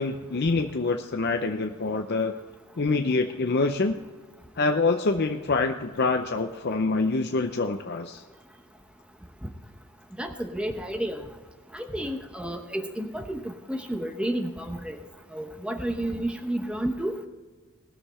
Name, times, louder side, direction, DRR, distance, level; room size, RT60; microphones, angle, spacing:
voice 1, 0.0-2.3 2.8-3.9 4.6-8.2, left 3 dB, 50° left, 5 dB, 0.6 m, -25 dB
voice 2, 10.2-11.2 11.7-15.0 15.3-17.2, right 1 dB, 5° right, 5 dB, 0.9 m, -31 dB
20.0 x 6.8 x 4.3 m, 1.4 s
head